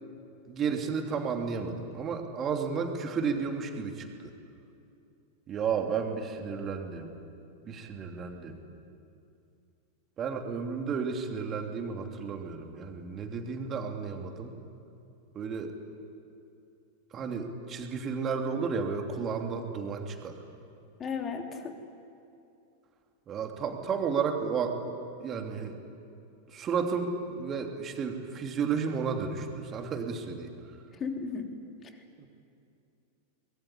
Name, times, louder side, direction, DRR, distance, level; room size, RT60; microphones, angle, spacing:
voice 1, 0.5-4.3 5.5-7.2 7.6-8.6 10.2-14.5 15.3-15.7 17.1-20.4 23.3-24.9 25.2-25.8 26.5-30.5 32.2-32.3, right 5 dB, 25° right, 3 dB, 3.1 m, -32 dB
voice 2, 21.0-21.7 31.0-31.6, left 5 dB, 25° left, 4 dB, 3.3 m, -34 dB
24.5 x 21.5 x 9.9 m, 2.7 s
figure-of-eight pair, 90°, 0 cm